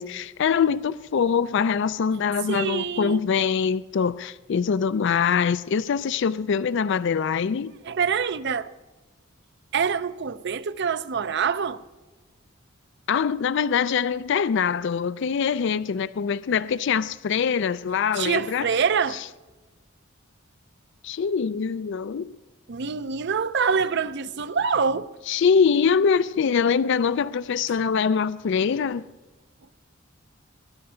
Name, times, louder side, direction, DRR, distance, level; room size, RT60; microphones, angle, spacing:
voice 1, 0.0-7.7 13.1-18.7 21.0-22.3 25.3-29.1, left 6 dB, 60° left, 0.4 m, -23 dB
voice 2, 2.5-3.2 7.8-8.7 9.7-11.8 18.1-19.2 22.7-25.1, right 6 dB, 60° right, 0.6 m, -25 dB
20.5 x 11.0 x 5.6 m
head